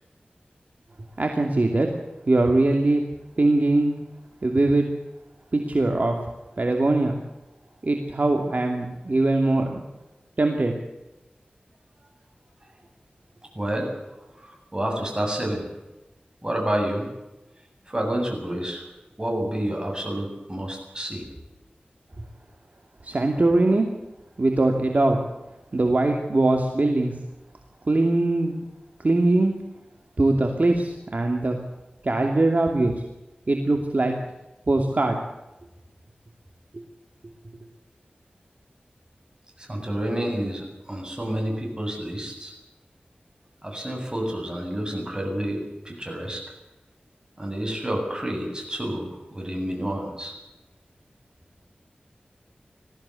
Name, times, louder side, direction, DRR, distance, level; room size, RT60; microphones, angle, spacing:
voice 1, 1.2-1.9 2.3-3.0 3.4-3.9 4.4-4.9 5.5-6.2 6.6-7.2 7.8-9.8 10.4-10.7 23.0-23.9 24.4-25.2 25.7-27.1 27.9-28.5 29.0-29.5 30.2-31.6 32.0-33.0 33.5-34.1 34.7-35.2 36.7-36.8, right 2 dB, 55° right, 3 dB, 2.5 m, -21 dB
voice 2, 13.5-13.9 14.3-15.7 16.4-17.1 17.9-18.8 19.2-21.2 39.6-42.5 43.6-46.5 47.4-50.3, right 1 dB, 25° right, 2 dB, 7.9 m, -29 dB
21.0 x 15.0 x 8.4 m, 1.0 s
wide cardioid pair, 65°, 3 cm